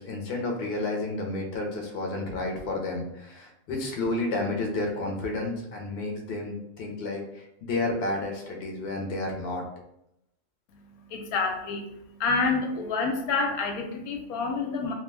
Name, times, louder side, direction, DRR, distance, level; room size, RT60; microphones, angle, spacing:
voice 1, 0.0-9.6, left 2 dB, 55° left, 0 dB, 0.7 m, -31 dB
voice 2, 10.7-14.9, left 4 dB, 90° left, 3 dB, 1.0 m, -28 dB
2.4 x 2.2 x 3.2 m, 0.80 s
omnidirectional pair, 1.5 m